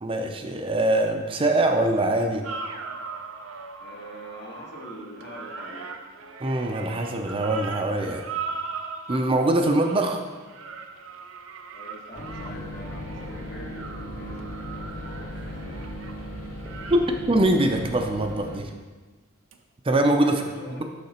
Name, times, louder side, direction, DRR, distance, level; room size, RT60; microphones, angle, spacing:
voice 1, 0.0-2.4 6.4-8.2 9.1-10.2 16.9-18.7 19.8-20.4, right 1 dB, 25° right, 4 dB, 0.5 m, -23 dB
sound 1, 2.4-18.0 19.5-19.6, right 4 dB, 85° right, 0.6 m, -39 dB
voice 2, 3.8-5.9 11.7-15.8 20.2-20.8, equal, 55° left, -2 dB, 1.4 m, -43 dB
sound 2, 12.1-18.6, equal, 40° left, 1.9 m, -37 dB
6.6 x 5.7 x 4.3 m, 1.3 s
head